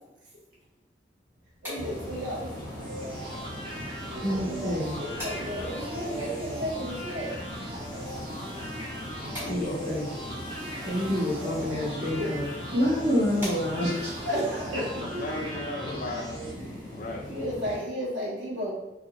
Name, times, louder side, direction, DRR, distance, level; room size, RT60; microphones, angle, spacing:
sound 1, 1.3-14.1, equal, 10° right, 1.0 m, -47 dB
voice 1, 1.6-2.5 4.1-7.4 12.0-12.3 14.3-15.2 16.7-16.8 17.3-18.7, equal, 90° right, -3 dB, 0.8 m, -33 dB
sound 2, 1.7-17.8, left 1 dB, 15° left, 0.9 m, -39 dB
sound 3, 2.8-16.5, right 1 dB, 30° right, 0.5 m, -40 dB
voice 2, 3.0-3.5 4.2-4.9 9.5-10.1 10.8-12.5 12.7-14.3, left 1 dB, 65° right, -8 dB, 1.0 m, -28 dB
voice 3, 9.2-9.9 15.1-16.3 16.9-17.3, left 2 dB, 45° left, 1 dB, 0.4 m, -36 dB
2.5 x 2.1 x 2.8 m, 0.93 s
head